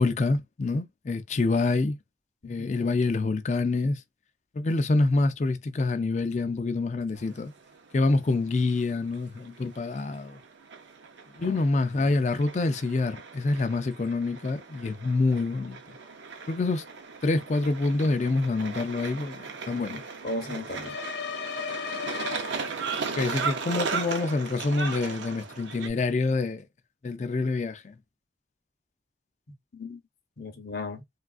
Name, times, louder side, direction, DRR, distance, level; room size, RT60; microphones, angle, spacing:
voice 1, 0.0-2.0 2.4-4.0 4.5-7.5 7.9-10.4 11.4-15.8 16.5-16.8 17.2-20.0 23.2-26.6 27.0-27.9, left 3 dB, 40° left, 0.3 m, -26 dB
voice 2, 2.4-2.8 11.4-11.6 12.0-12.2 19.7-21.0 29.7-30.0 30.4-31.0, left 2 dB, 55° left, 0.7 m, -37 dB
sound 1, 7.1-25.9, right 5 dB, 80° right, 0.6 m, -37 dB
sound 2, 20.8-23.1, left 7 dB, 75° left, 1.0 m, -35 dB
3.3 x 2.4 x 2.4 m
head